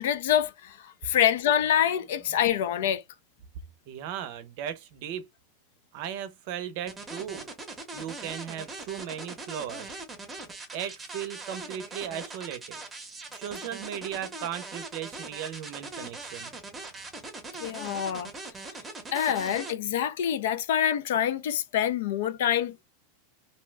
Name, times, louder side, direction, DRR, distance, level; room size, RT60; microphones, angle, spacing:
voice 1, 0.0-3.0 17.6-18.3 19.1-22.8, left 10 dB, 70° left, 0.4 m, -26 dB
voice 2, 3.9-5.3 5.9-7.5 7.9-10.0 10.7-12.8 13.3-17.0, right 10 dB, 50° right, 0.5 m, -37 dB
sound 1, 6.9-19.7, right 2 dB, 10° right, 0.8 m, -41 dB
2.7 x 2.1 x 3.2 m
supercardioid pair, 155°, 0 cm